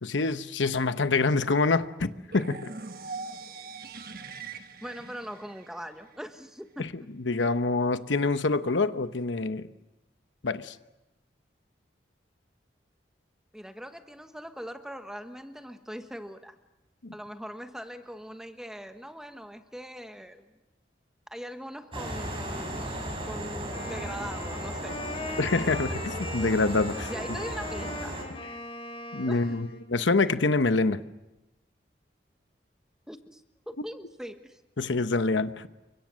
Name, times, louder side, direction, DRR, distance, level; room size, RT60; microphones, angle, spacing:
voice 1, 0.0-2.7 6.8-9.7 10.4-10.8 17.0-17.1 25.4-27.1 29.1-31.0 34.8-35.7, left 3 dB, 90° left, 11 dB, 1.0 m, -26 dB
sound 1, 2.3-6.3, right 4 dB, 50° right, 1.3 m, -42 dB
voice 2, 4.8-6.9 13.5-16.6 17.1-20.5 21.3-25.0 27.1-28.2 29.3-29.6 33.1-34.6, equal, 5° right, 7 dB, 1.2 m, -41 dB
sound 2, 21.9-28.2, right 1 dB, 30° right, 5.4 m, -35 dB
Wind instrument woodwind instrument, 23.7-29.9, left 2 dB, 30° left, 3.0 m, -40 dB
29.5 x 24.5 x 6.4 m, 0.98 s
head